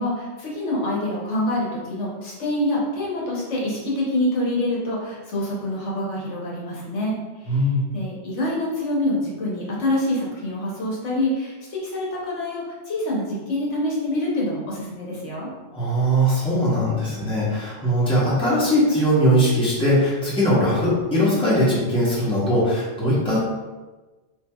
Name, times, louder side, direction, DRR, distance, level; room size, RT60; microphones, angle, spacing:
voice 1, 0.0-7.6 7.9-15.5, left 1 dB, 75° left, -4 dB, 1.2 m, -26 dB
voice 2, 7.5-7.8 15.7-23.4, equal, 5° left, -9 dB, 1.0 m, -20 dB
4.6 x 2.9 x 2.3 m, 1.2 s
omnidirectional pair, 1.2 m